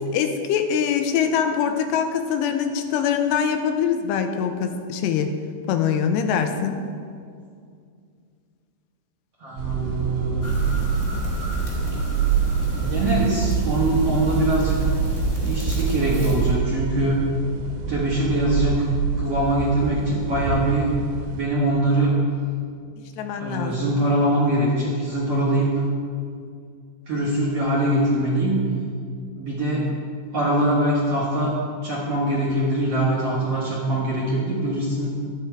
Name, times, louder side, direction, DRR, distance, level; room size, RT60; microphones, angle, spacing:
voice 1, 0.0-5.3 5.7-6.8 23.2-23.7, left 7 dB, 85° left, 6 dB, 2.9 m, -23 dB
voice 2, 9.4-10.5 12.7-14.8 15.4-17.2 17.9-18.9 19.2-20.9 21.3-22.1 23.4-25.7 27.1-28.6 29.3-29.8 30.3-31.6 31.8-35.1, right 1 dB, 55° right, -6 dB, 1.8 m, -23 dB
sound 1, 9.6-21.4, right 7 dB, 90° right, 3.1 m, -26 dB
sound 2, 10.4-16.5, left 1 dB, 10° left, 1.6 m, -29 dB
13.0 x 9.0 x 4.6 m, 2.3 s
omnidirectional pair, 4.9 m